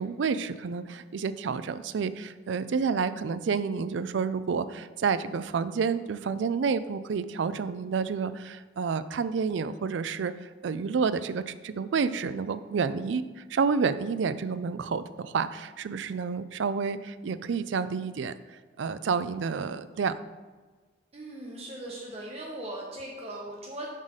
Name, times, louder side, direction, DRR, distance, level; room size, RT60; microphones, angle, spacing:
voice 1, 0.0-18.3 18.8-20.1, right 5 dB, 75° right, 13 dB, 0.4 m, -29 dB
voice 2, 21.1-23.9, right 1 dB, 30° right, -2 dB, 0.9 m, -39 dB
7.3 x 4.0 x 6.4 m, 1.4 s
head